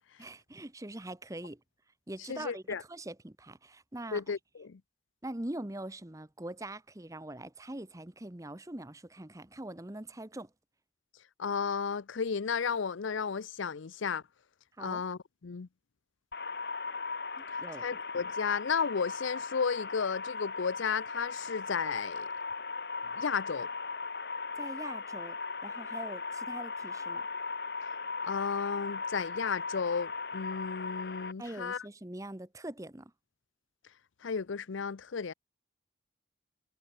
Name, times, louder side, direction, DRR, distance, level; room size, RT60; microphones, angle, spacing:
voice 1, 0.2-1.6 2.1-4.2 5.2-10.5 14.8-15.0 17.4-17.9 24.6-25.4 25.6-27.2 31.4-33.1, right 1 dB, 15° right, 0.9 m, -43 dB
voice 2, 2.3-2.8 4.1-4.8 11.4-14.2 14.8-15.7 17.8-22.3 23.2-23.7 28.2-31.9 34.2-35.3, left 6 dB, 75° left, 0.6 m, -33 dB
sound 1, 16.3-31.3, left 4 dB, 55° left, 2.0 m, -38 dB
head